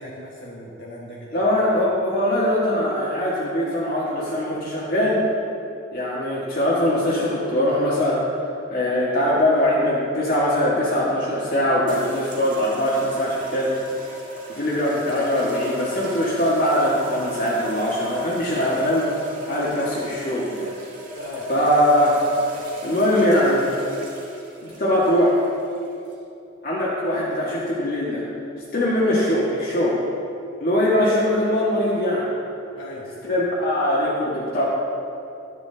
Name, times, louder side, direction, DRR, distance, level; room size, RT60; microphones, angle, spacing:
voice 1, 0.0-1.4 21.1-21.5 26.1-26.2 32.8-33.1, left 1 dB, 70° left, -5 dB, 1.3 m, -38 dB
voice 2, 1.3-5.2 5.9-8.2 8.7-13.8 14.5-19.1 19.5-20.7 21.5-22.2 22.8-23.7 24.6-25.4 26.6-28.2 28.7-30.0 30.6-32.3 33.2-34.6, left 1 dB, 50° left, -7 dB, 1.6 m, -21 dB
sound 1, 11.9-26.1, right 1 dB, 45° right, 1.7 m, -38 dB
11.0 x 9.6 x 3.4 m, 2.7 s
head